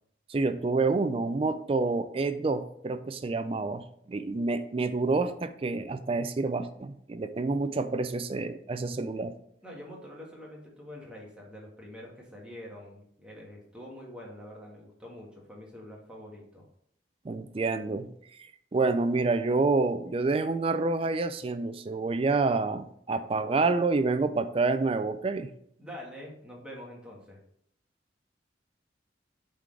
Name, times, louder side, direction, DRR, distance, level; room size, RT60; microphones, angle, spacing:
voice 1, 0.3-9.3 17.2-18.1 18.4-18.5 18.7-25.5, right 3 dB, 30° right, 10 dB, 0.4 m, -28 dB
voice 2, 9.6-16.7 25.8-27.4, left 1 dB, 5° right, -3 dB, 1.5 m, -45 dB
8.2 x 3.8 x 3.3 m, 0.69 s
head